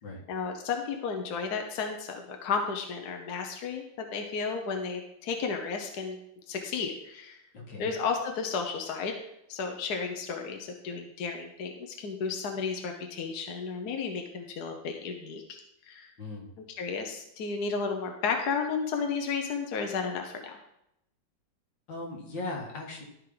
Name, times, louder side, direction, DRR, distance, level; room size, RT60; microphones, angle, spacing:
voice 1, 0.3-6.2 6.5-7.4 7.8-9.2 9.5-15.6 15.9-16.1 16.8-20.6, left 5 dB, 60° left, 3 dB, 1.3 m, -33 dB
voice 2, 7.5-7.9 16.2-16.5 21.9-23.0, left 2 dB, 80° left, -1 dB, 2.4 m, -38 dB
12.5 x 4.6 x 3.8 m, 0.80 s
omnidirectional pair, 2.0 m